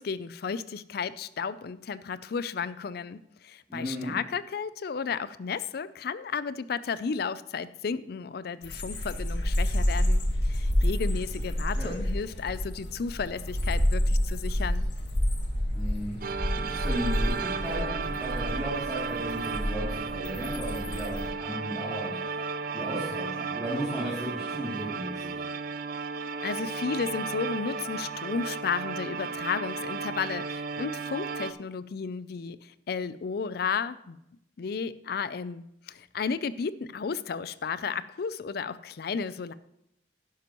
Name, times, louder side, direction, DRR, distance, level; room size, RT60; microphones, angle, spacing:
voice 1, 0.0-14.9 26.4-34.2 34.6-39.5, left 5 dB, 60° left, 16 dB, 0.4 m, -33 dB
voice 2, 3.7-4.2 11.8-12.0 15.7-16.2 16.7-22.4 22.7-25.4, equal, 5° right, -11 dB, 2.7 m, -35 dB
sound 1, 8.6-21.2, equal, 80° left, 1.7 m, -29 dB
sound 2, 16.2-31.5, right 4 dB, 55° right, 0.5 m, -34 dB
11.5 x 10.5 x 3.0 m, 0.81 s
head